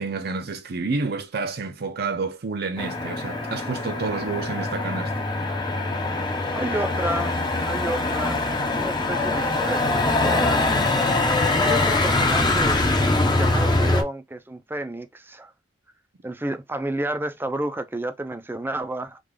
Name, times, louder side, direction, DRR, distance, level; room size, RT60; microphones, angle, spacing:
voice 1, 0.0-5.1, right 4 dB, 60° right, 0.6 m, -29 dB
Motor vehicle (road), 2.8-14.0, left 2 dB, 25° left, 0.8 m, -23 dB
voice 2, 6.5-7.4 7.6-10.6 11.6-12.8 13.1-15.5 16.2-19.2, right 1 dB, 10° right, 0.5 m, -31 dB
3.6 x 2.5 x 3.3 m
head